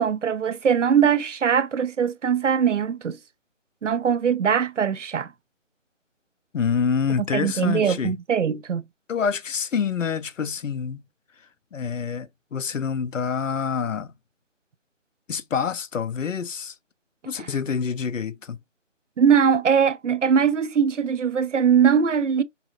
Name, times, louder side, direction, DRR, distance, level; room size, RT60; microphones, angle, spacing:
voice 1, 0.0-3.2 3.8-5.3 7.3-8.8 17.4-17.5 19.2-22.4, right 7 dB, 70° right, 0.5 m, -21 dB
voice 2, 6.5-8.1 9.1-11.0 11.7-14.1 15.3-16.7 17.2-18.6, left 6 dB, 80° left, 0.6 m, -27 dB
5.4 x 2.5 x 2.6 m
figure-of-eight pair, 175°, 38 cm